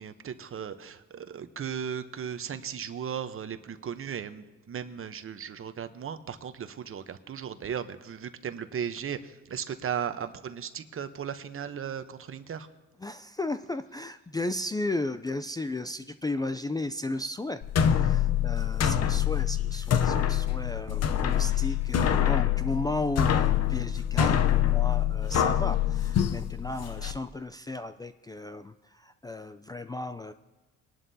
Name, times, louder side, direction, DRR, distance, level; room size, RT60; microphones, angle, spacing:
voice 1, 0.0-12.7, right 8 dB, 45° right, 10 dB, 0.9 m, -36 dB
voice 2, 13.0-30.3, left 2 dB, 15° left, 10 dB, 0.4 m, -35 dB
sound 1, 17.6-27.1, left 10 dB, 55° left, 0.7 m, -25 dB
21.5 x 11.0 x 2.8 m, 1.2 s
cardioid pair, 90°, 30 cm